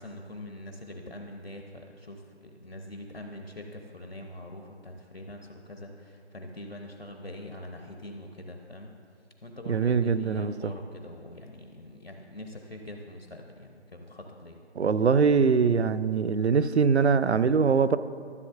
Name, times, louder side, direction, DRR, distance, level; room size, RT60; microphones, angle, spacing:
voice 1, 0.0-8.9 9.4-14.6, left 1 dB, 60° left, 3 dB, 0.8 m, -43 dB
voice 2, 9.7-10.5 14.8-18.0, right 5 dB, 75° right, 15 dB, 0.5 m, -22 dB
13.0 x 7.2 x 2.5 m, 2.2 s
figure-of-eight pair, 180°, 34 cm